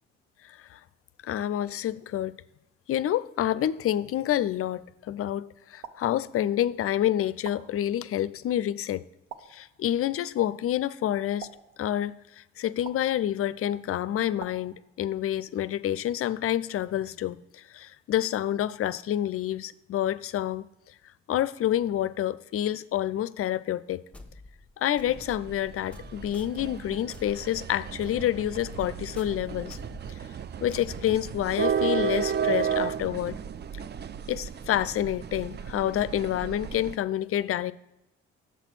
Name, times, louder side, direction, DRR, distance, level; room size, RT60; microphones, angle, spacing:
voice 1, 0.4-0.8 1.2-2.4 2.9-9.0 9.5-11.5 11.8-20.6 21.3-24.0 24.8-29.8 30.6-33.4 34.3-37.7, left 12 dB, 45° left, 0.5 m, -28 dB
sound 1, 5.8-6.7 7.4-8.3 9.3-10.1 11.4-12.3 12.8-13.6 14.4-15.4, right 7 dB, 65° right, 0.8 m, -47 dB
sound 2, 24.1-31.8, left 2 dB, 5° left, 1.2 m, -48 dB
sound 3, 25.0-37.0, right 8 dB, 35° right, 0.4 m, -33 dB
7.1 x 4.1 x 6.0 m
hypercardioid pair, 50°, 31 cm